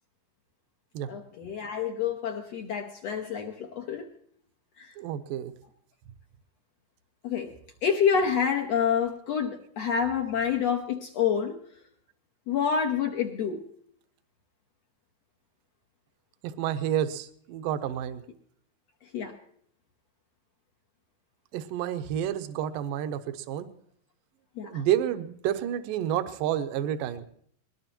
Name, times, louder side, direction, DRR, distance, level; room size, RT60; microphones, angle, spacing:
voice 1, 1.1-4.1 4.8-4.9 7.2-7.5 7.8-11.6 12.5-13.6 19.1-19.3 24.6-24.8, left 7 dB, 65° left, 2 dB, 1.7 m, -28 dB
voice 2, 5.0-5.5 16.4-18.2 21.5-23.7 24.7-27.2, right 10 dB, 80° right, 10 dB, 2.4 m, -29 dB
21.5 x 19.0 x 3.0 m, 0.63 s
omnidirectional pair, 4.1 m